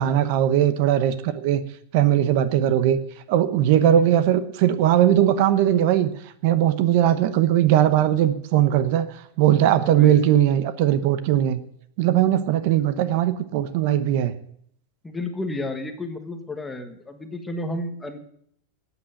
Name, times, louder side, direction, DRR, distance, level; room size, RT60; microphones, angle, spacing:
voice 1, 0.0-1.6 1.9-3.0 3.3-11.6 12.0-14.3, right 11 dB, 50° right, 12 dB, 0.9 m, -19 dB
voice 2, 3.8-4.1 9.8-10.2 15.0-18.2, left 2 dB, 10° left, 7 dB, 1.3 m, -32 dB
13.5 x 9.0 x 7.8 m, 0.67 s
supercardioid pair, 165°, 0 cm